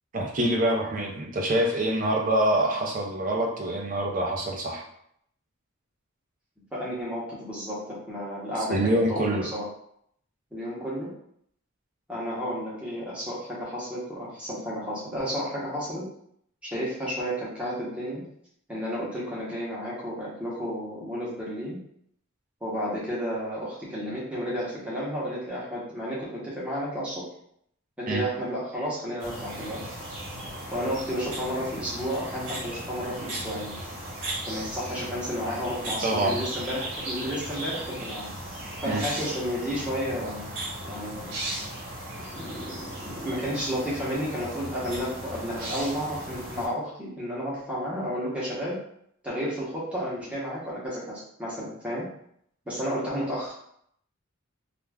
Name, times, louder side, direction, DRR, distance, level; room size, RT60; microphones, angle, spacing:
voice 1, 0.1-4.8 8.7-9.5 28.1-28.2 36.0-36.4 38.9-39.0, right 1 dB, 40° right, 0 dB, 0.5 m, -25 dB
voice 2, 6.7-9.7 10.5-11.1 12.1-16.0 16.6-18.2 18.7-21.8 22.6-27.2 28.0-29.8 30.7-33.8 34.5-38.3 38.8-41.3 42.3-48.8 49.2-52.1 52.7-53.5, equal, 5° right, -7 dB, 0.8 m, -32 dB
sound 1, 29.2-46.7, right 1 dB, 80° right, 1.0 m, -37 dB
2.4 x 2.2 x 3.3 m, 0.71 s
head